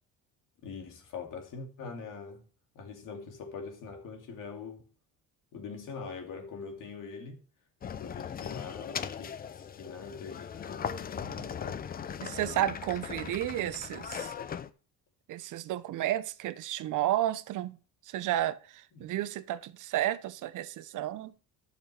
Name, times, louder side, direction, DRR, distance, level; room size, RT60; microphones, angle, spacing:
voice 1, 0.6-2.4 2.7-4.9 5.5-7.4 8.0-12.1 18.9-19.1, left 5 dB, 60° left, 2.4 m, -43 dB
sound 1, 7.8-14.7, left 7 dB, 25° left, 0.4 m, -39 dB
voice 2, 12.2-14.3 15.3-17.8 18.1-21.3, right 13 dB, 60° right, 0.7 m, -32 dB
12.0 x 6.7 x 3.3 m
cardioid pair, 130°, 35 cm